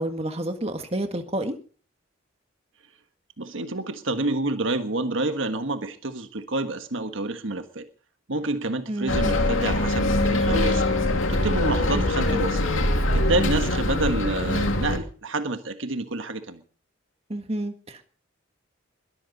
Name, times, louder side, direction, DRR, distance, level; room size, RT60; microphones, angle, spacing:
voice 1, 0.0-1.6 8.9-9.3 11.9-12.1 17.3-18.0, right 1 dB, 30° right, 6 dB, 1.7 m, -29 dB
voice 2, 3.4-7.9 8.3-10.8 11.3-12.6 13.1-16.6, right 2 dB, 70° right, 8 dB, 1.5 m, -28 dB
Bus, 9.1-15.0, left 1 dB, 80° left, 2.4 m, -23 dB
22.0 x 13.5 x 4.1 m, 0.42 s
head